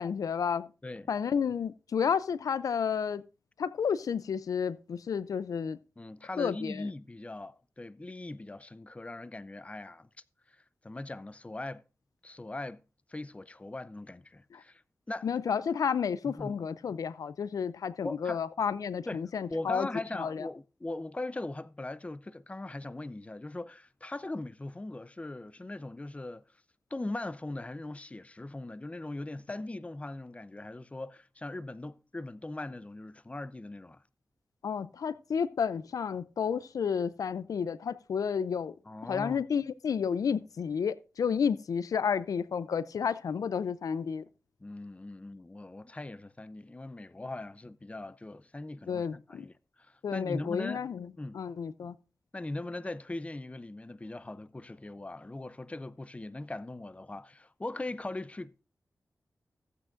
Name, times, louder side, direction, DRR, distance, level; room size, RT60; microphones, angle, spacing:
voice 1, 0.0-0.7 1.1-3.2 3.6-5.8 6.4-6.9 14.5-14.6 15.2-19.9 20.2-20.5 34.6-38.7 39.1-44.2 48.9-49.5 50.0-51.1 51.3-51.9, left 7 dB, 85° left, 0.4 m, -31 dB
voice 2, 6.0-10.1 10.5-10.6 10.8-11.8 12.2-12.8 13.1-14.8 15.1-15.3 16.2-16.6 18.0-18.4 19.1-19.2 19.5-26.4 26.9-34.0 38.9-39.4 44.6-50.8 51.2-51.4 52.3-58.6, left 2 dB, 20° left, 0.5 m, -40 dB
15.0 x 8.8 x 2.5 m
cardioid pair, 60°, 6 cm